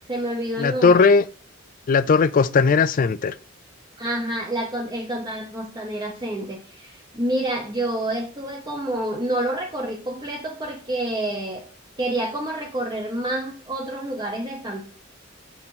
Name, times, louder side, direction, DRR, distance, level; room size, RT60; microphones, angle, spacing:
voice 1, 0.1-1.1 4.0-11.6 12.0-14.9, right 1 dB, 20° right, 0.8 m, -28 dB
voice 2, 0.6-1.2 1.9-3.3, left 5 dB, 40° left, 0.4 m, -17 dB
8.5 x 2.9 x 4.2 m
head